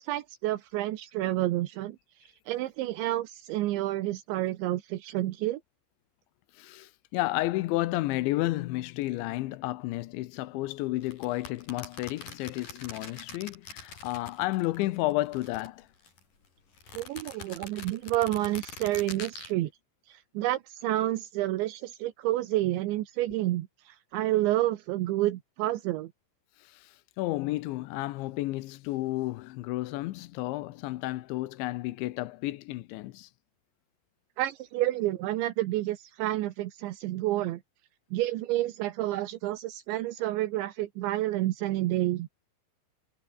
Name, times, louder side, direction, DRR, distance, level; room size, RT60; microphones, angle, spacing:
voice 1, 0.0-5.6 16.9-19.7 20.1-26.1 34.4-37.6 38.1-42.3, right 15 dB, 80° right, 3.4 m, -29 dB
voice 2, 6.6-15.9 26.6-33.3, left 18 dB, 85° left, 3.1 m, -32 dB
sound 1, 11.0-14.8 15.1-16.2 16.8-19.5, left 4 dB, 45° left, 7.3 m, -44 dB
omnidirectional pair, 5.3 m